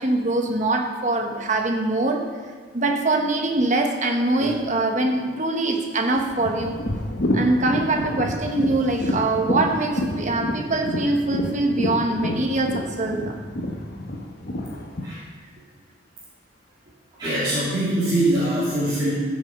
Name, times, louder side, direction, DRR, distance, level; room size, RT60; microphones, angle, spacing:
voice 1, 0.0-2.3 2.7-6.8 7.3-13.4, right 2 dB, 40° right, 3 dB, 1.1 m, -23 dB
sound 1, 6.2-15.1, left 1 dB, 50° left, 1.1 m, -28 dB
voice 2, 14.7-15.3 17.2-19.1, right 1 dB, 20° right, -12 dB, 2.9 m, -23 dB
15.0 x 6.3 x 5.1 m, 1.5 s
head